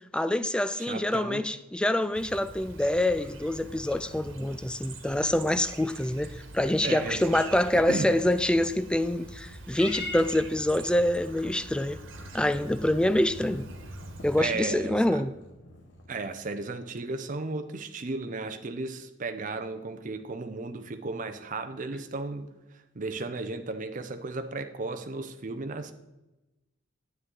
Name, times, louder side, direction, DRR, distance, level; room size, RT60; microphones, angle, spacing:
voice 1, 0.1-12.0 12.3-13.7 14.2-15.3, left 1 dB, 5° left, 0.3 m, -26 dB
voice 2, 0.8-1.4 6.8-7.4 7.7-8.1 14.4-15.2 16.1-22.5 23.0-25.9, right 3 dB, 40° right, 0.5 m, -34 dB
Chirp tweet, 2.1-14.4, right 2 dB, 85° right, 1.3 m, -44 dB
Purr / Meow, 9.7-16.2, left 3 dB, 65° left, 1.3 m, -44 dB
9.8 x 7.9 x 3.8 m
head